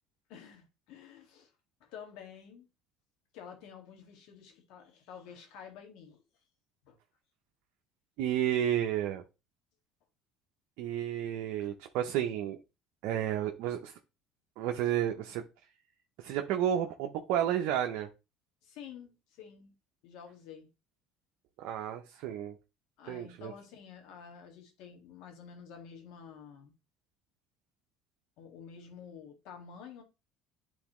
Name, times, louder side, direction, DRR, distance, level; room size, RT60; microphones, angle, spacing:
voice 1, 0.3-1.5 1.8-2.7 3.3-6.2 6.9-7.0 18.6-19.8 20.0-20.7 23.0-26.7 28.4-30.0, left 7 dB, 70° left, 1.9 m, -50 dB
voice 2, 8.2-9.2 10.8-12.6 13.0-13.9 14.6-15.4 16.2-18.1 21.6-22.6 23.1-23.5, right 10 dB, 75° right, 0.7 m, -31 dB
9.6 x 3.9 x 3.0 m
supercardioid pair, 95°, 0 cm